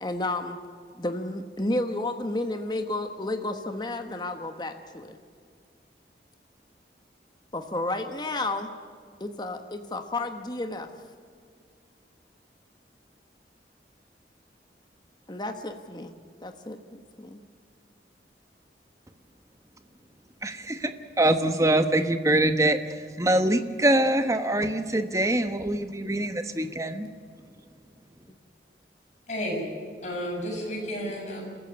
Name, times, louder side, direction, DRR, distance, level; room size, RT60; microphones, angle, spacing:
voice 1, 0.0-0.6 0.9-5.2 7.5-8.7 9.2-10.9 15.3-16.1 16.4-17.4, left 2 dB, 25° left, 6 dB, 1.2 m, -31 dB
voice 2, 20.4-20.9 21.2-22.8 23.2-27.1, right 1 dB, 20° right, 8 dB, 1.1 m, -24 dB
voice 3, 29.3-29.6 30.0-31.4, equal, 40° left, -1 dB, 7.1 m, -32 dB
27.0 x 14.5 x 8.8 m, 2.1 s
head